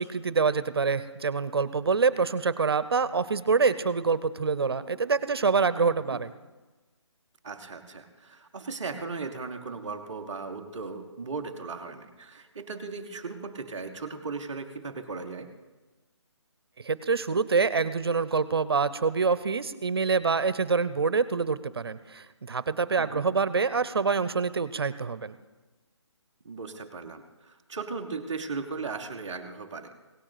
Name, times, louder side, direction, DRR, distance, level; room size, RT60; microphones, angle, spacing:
voice 1, 0.0-6.3 16.8-25.3, right 5 dB, 55° right, 15 dB, 0.6 m, -26 dB
voice 2, 7.4-15.5 23.0-23.3 26.4-29.9, right 4 dB, 5° right, -6 dB, 0.4 m, -37 dB
17.5 x 6.2 x 6.7 m, 1.2 s
hypercardioid pair, 175°, 15 cm